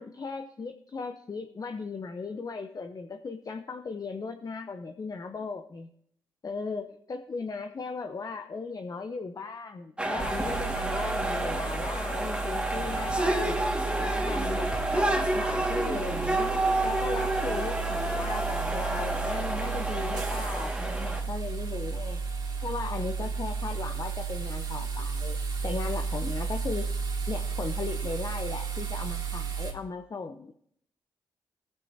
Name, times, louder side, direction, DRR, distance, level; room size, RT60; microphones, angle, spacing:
voice 1, 0.0-5.9 6.4-13.6 14.0-16.5 16.8-22.2 22.6-25.4 25.6-26.9 27.3-30.5, left 4 dB, 40° left, 7 dB, 0.8 m, -37 dB
sound 1, 10.0-21.2, right 1 dB, 10° right, 2.0 m, -29 dB
sound 2, 10.2-29.7, right 5 dB, 50° right, 2.9 m, -33 dB
17.0 x 9.1 x 2.8 m, 0.68 s
hypercardioid pair, 45°, 9 cm